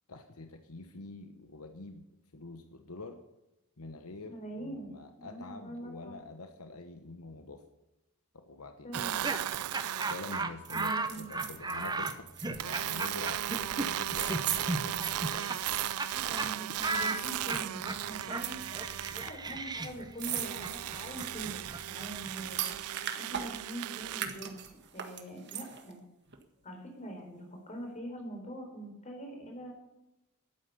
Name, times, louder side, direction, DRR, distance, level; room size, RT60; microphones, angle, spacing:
voice 1, 0.1-2.0 2.3-3.2 3.8-7.6 8.3-8.9 10.0-15.5, left 3 dB, 75° left, 6 dB, 1.1 m, -46 dB
voice 2, 4.3-4.9 5.2-6.2 8.8-9.3 10.7-11.5 15.3-15.6 16.1-22.6 23.1-24.6 24.9-26.0 26.6-29.7, right 1 dB, 30° left, 2 dB, 4.1 m, -43 dB
Laughter, 8.9-16.1 16.4-16.5 16.8-22.5, right 3 dB, 20° right, 0.9 m, -36 dB
sound 1, 8.9-10.5 12.6-19.3 20.2-24.2, right 12 dB, 75° right, 0.4 m, -36 dB
sound 2, 10.7-16.8 17.1-17.7 18.2-19.2 19.5-19.6 19.8-23.8 24.1-25.9 26.3-26.4, right 10 dB, 50° right, 1.7 m, -39 dB
12.0 x 9.3 x 8.4 m, 0.96 s
head